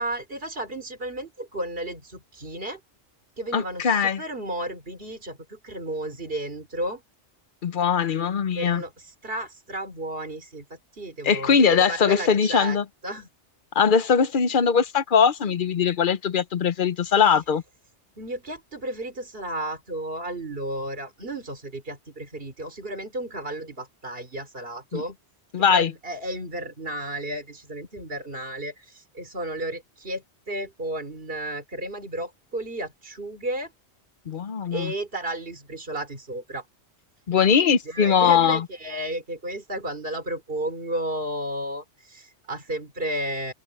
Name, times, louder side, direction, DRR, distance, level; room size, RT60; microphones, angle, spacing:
voice 1, 0.0-2.8 3.4-7.0 8.5-10.7 10.9-12.8 13.0-13.3 18.2-25.2 25.7-33.7 34.7-36.7 37.9-43.5, right 1 dB, 55° right, 3.8 m, -33 dB
voice 2, 3.5-4.2 7.6-8.8 11.2-12.8 13.7-17.6 24.9-25.0 25.5-25.9 34.3-34.9 37.3-38.6, left 7 dB, 50° left, 0.9 m, -21 dB
open air
omnidirectional pair, 1.2 m